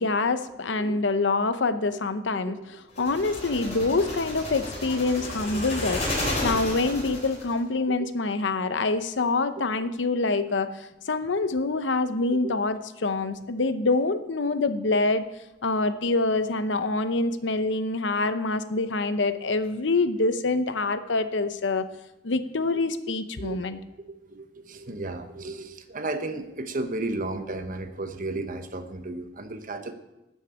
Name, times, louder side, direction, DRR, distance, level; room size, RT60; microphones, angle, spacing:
voice 1, 0.0-2.6 3.0-6.0 6.4-15.3 15.6-21.9 22.2-23.8, left 3 dB, 85° left, 11 dB, 0.8 m, -26 dB
sound 1, 3.0-7.5, left 1 dB, 40° left, 3.7 m, -32 dB
voice 2, 24.3-29.9, right 2 dB, 50° right, 8 dB, 1.0 m, -34 dB
12.0 x 6.5 x 7.1 m, 0.96 s
head